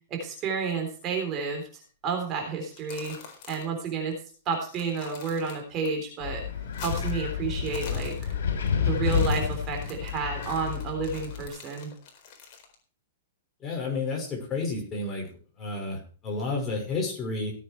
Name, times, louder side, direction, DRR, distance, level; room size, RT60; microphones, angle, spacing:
voice 1, 0.1-3.2 3.5-4.2 4.5-6.4 6.8-8.4 8.9-11.9, right 5 dB, 25° right, 3 dB, 3.7 m, -31 dB
sound 1, 2.6-3.8 4.1-4.2 4.5-5.9 6.2-7.3 7.6-8.7 9.0-12.7, left 6 dB, 40° left, 4.3 m, -45 dB
Wind, 6.2-11.5, left 7 dB, 80° left, 3.7 m, -30 dB
voice 2, 13.6-15.3 15.6-17.5, left 3 dB, 20° left, 0 dB, 5.8 m, -31 dB
17.0 x 8.7 x 4.6 m, 0.41 s
hypercardioid pair, 155°, 0 cm